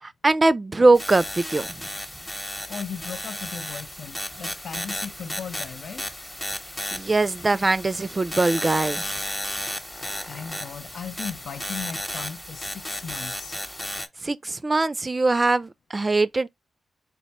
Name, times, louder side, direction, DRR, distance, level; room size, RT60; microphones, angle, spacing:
voice 1, 0.0-1.8 6.9-9.0 14.2-16.5, right 2 dB, 30° right, 0.4 m, -22 dB
sound 1, 0.9-14.1, left 1 dB, 10° left, 0.9 m, -34 dB
voice 2, 2.7-6.0 10.2-13.6, left 6 dB, 70° left, 0.4 m, -37 dB
4.4 x 2.1 x 4.1 m
cardioid pair, 85°, 0 cm